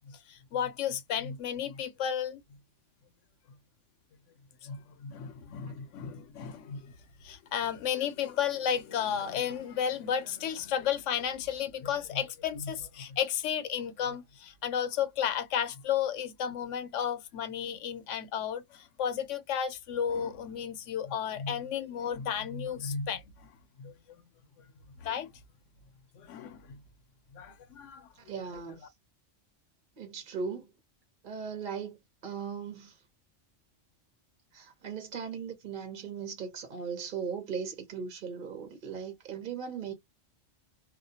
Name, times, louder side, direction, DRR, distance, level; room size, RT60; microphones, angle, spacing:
voice 1, 0.1-2.4 4.6-6.9 7.2-23.2 23.8-23.9 25.0-25.3 26.2-26.6 27.3-28.1, left 8 dB, 80° left, 0.9 m, -33 dB
voice 2, 28.2-28.9 30.0-30.7 31.2-33.0 34.5-39.9, right 6 dB, 50° right, 0.8 m, -38 dB
2.3 x 2.1 x 2.6 m
omnidirectional pair, 1.3 m